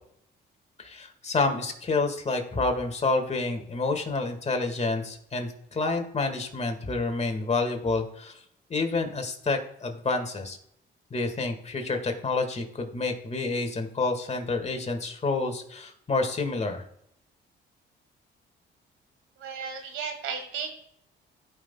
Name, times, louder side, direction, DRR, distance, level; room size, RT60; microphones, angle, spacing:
voice 1, 0.8-8.4 8.7-10.6 11.1-16.8, left 3 dB, 35° left, 5 dB, 1.7 m, -28 dB
voice 2, 19.4-20.7, right 6 dB, 90° right, 5 dB, 1.6 m, -34 dB
16.0 x 5.5 x 2.2 m, 0.72 s
cardioid pair, 90°, 20 cm